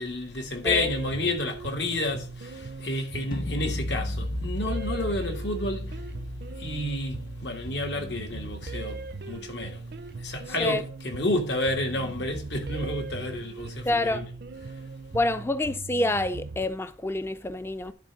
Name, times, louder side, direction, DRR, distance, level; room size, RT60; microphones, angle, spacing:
voice 1, 0.0-6.0 6.6-9.8 10.2-14.3, left 2 dB, 80° left, 1.8 m, -30 dB
sound 1, 0.7-16.7, right 3 dB, 60° right, 0.5 m, -39 dB
sound 2, 3.3-9.3, left 1 dB, 50° left, 1.3 m, -35 dB
voice 2, 13.9-14.2 15.1-17.9, left 2 dB, 15° left, 0.3 m, -27 dB
10.5 x 4.2 x 5.9 m
head